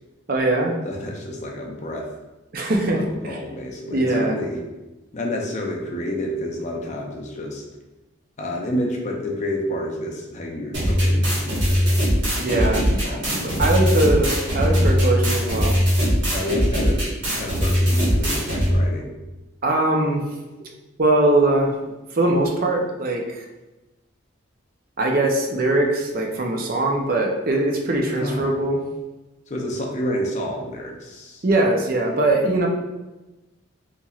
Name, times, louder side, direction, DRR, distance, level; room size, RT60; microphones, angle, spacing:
voice 1, 0.3-0.7 2.5-3.4 3.9-4.4 12.4-15.7 19.6-20.2 21.0-21.8 22.1-23.4 25.0-28.8 31.4-32.7, right 2 dB, 45° right, 0 dB, 0.5 m, -21 dB
voice 2, 0.8-2.1 3.1-4.6 5.1-7.6 8.4-12.1 13.0-13.9 16.3-17.0 17.3-19.1 28.2-28.5 29.5-31.4, left 1 dB, 35° left, 0 dB, 0.5 m, -29 dB
sound 1, 10.7-18.7, equal, 65° right, 1.4 m, -20 dB
4.2 x 3.0 x 2.4 m, 1.1 s
head